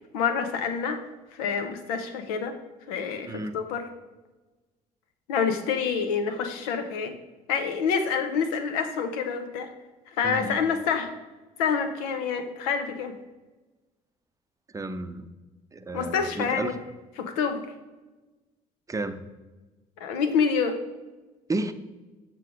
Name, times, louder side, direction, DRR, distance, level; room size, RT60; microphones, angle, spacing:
voice 1, 0.1-1.0 1.3-2.5 2.9-3.8 5.3-7.1 7.5-9.7 10.1-11.1 11.6-13.2 15.9-16.7 17.2-17.7 20.0-20.8, left 6 dB, 75° left, 7 dB, 0.8 m, -27 dB
voice 2, 10.2-10.6 14.7-15.2 15.7-16.7 18.9-19.2 21.5-21.7, right 2 dB, 15° right, 9 dB, 0.6 m, -32 dB
6.6 x 3.8 x 6.1 m, 1.2 s
hypercardioid pair, 50°, 19 cm